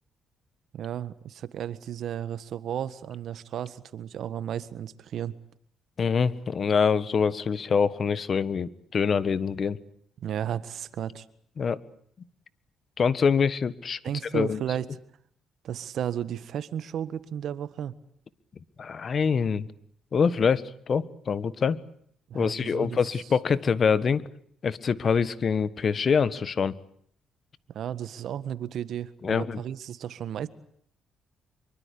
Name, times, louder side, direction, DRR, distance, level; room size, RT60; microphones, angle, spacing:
voice 1, 0.7-5.3 10.2-11.2 14.0-14.9 15.6-18.0 22.3-23.0 27.7-30.5, right 10 dB, 70° right, 15 dB, 1.6 m, -33 dB
voice 2, 6.0-9.8 11.6-11.8 13.0-14.0 14.3-14.6 18.8-19.7 20.1-21.8 22.3-24.2 24.6-26.8 29.2-29.6, left 6 dB, 45° left, 17 dB, 1.5 m, -25 dB
25.5 x 24.0 x 8.5 m, 0.64 s
cardioid pair, 90°, 0 cm